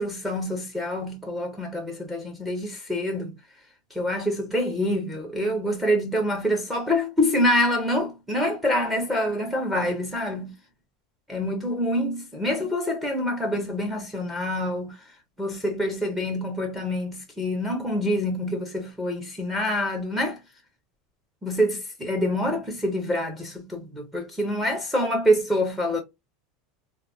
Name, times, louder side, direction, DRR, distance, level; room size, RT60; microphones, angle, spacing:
voice 1, 0.0-3.3 3.9-10.6 11.3-15.0 15.4-20.4 21.4-26.0, equal, 5° right, 0.5 m, -26 dB
3.6 x 2.0 x 2.2 m
supercardioid pair, 175°, 0 cm